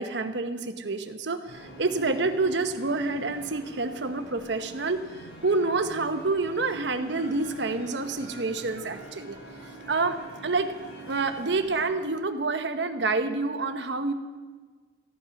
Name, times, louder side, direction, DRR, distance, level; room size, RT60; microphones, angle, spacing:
voice 1, 0.0-5.0 5.4-9.4 9.9-10.7 11.1-14.1, right 3 dB, 75° right, 8 dB, 1.0 m, -28 dB
sound 1, 1.5-11.9, right 2 dB, 65° left, 3.6 m, -45 dB
15.0 x 11.0 x 5.8 m, 1.4 s
head